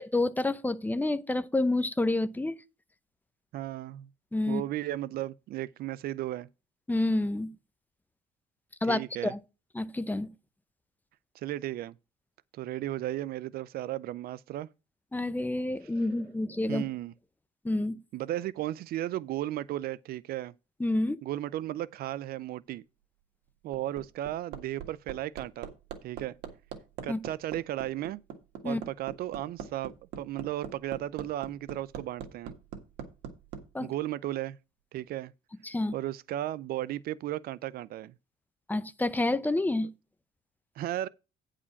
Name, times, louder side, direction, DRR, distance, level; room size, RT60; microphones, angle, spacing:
voice 1, 0.0-2.6 4.3-4.6 6.9-7.5 8.8-9.4 9.7-10.3 15.1-16.9 17.6-18.0 20.8-21.2 27.1-27.2 28.6-28.8 33.7-33.9 35.6-35.9 38.7-39.9, left 2 dB, 10° left, 0.7 m, -28 dB
voice 2, 3.5-4.1 4.5-6.5 8.9-9.3 11.3-11.9 12.5-14.7 16.7-17.1 18.1-20.5 21.2-22.8 23.6-25.7 26.0-26.4 27.0-28.2 28.6-32.5 33.8-34.6 34.9-35.3 35.9-38.1 40.8-41.1, right 14 dB, 65° right, 0.4 m, -35 dB
Hammer, 23.5-33.6 35.0-35.1, right 8 dB, 85° right, 1.7 m, -41 dB
9.7 x 4.9 x 5.7 m
cardioid pair, 110°, 17 cm